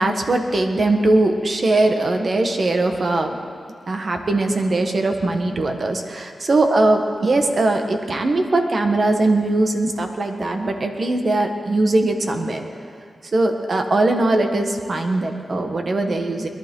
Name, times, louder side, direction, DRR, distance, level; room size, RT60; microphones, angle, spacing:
voice 1, 0.0-3.3 3.9-12.6 13.3-16.5, right 2 dB, 60° right, 4 dB, 1.5 m, -20 dB
22.0 x 11.5 x 3.9 m, 2.5 s
cardioid pair, 50°, 0 cm